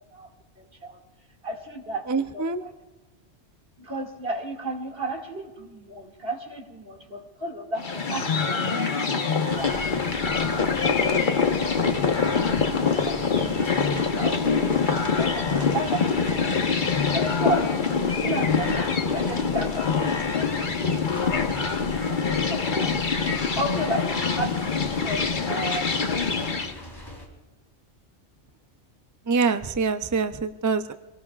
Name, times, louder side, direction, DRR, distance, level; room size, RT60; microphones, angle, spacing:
voice 1, 0.6-1.0 1.4-2.7 3.8-10.0 10.5-11.7 12.5-17.7 18.2-20.7 21.2-24.1 24.4-26.8, right 1 dB, 55° right, 1 dB, 2.5 m, -34 dB
voice 2, 2.1-2.6 29.3-30.9, right 4 dB, 30° right, 9 dB, 0.3 m, -25 dB
sound 1, 7.8-26.7, left 5 dB, 45° left, 1.2 m, -24 dB
sound 2, 9.5-27.3, left 1 dB, 20° left, 3.0 m, -41 dB
25.5 x 19.0 x 2.4 m, 1.2 s
omnidirectional pair, 1.2 m